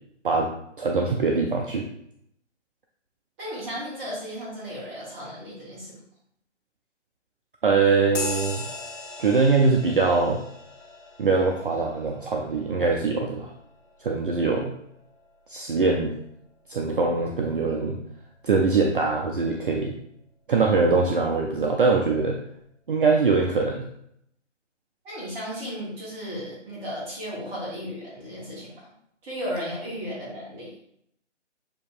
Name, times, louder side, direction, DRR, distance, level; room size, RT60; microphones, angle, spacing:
voice 1, 0.8-1.9 7.6-8.7 9.2-10.4 11.2-13.5 14.0-14.7 15.5-16.1 16.7-18.0 18.4-19.9 20.5-22.4 22.9-23.9, right 4 dB, 45° right, 0 dB, 0.5 m, -22 dB
voice 2, 3.4-6.0 25.0-28.7 29.2-30.7, equal, 10° right, -7 dB, 1.0 m, -35 dB
sound 1, 8.1-16.0, left 2 dB, 75° left, 1.3 m, -39 dB
6.8 x 2.7 x 2.4 m, 0.73 s
figure-of-eight pair, 150°, 37 cm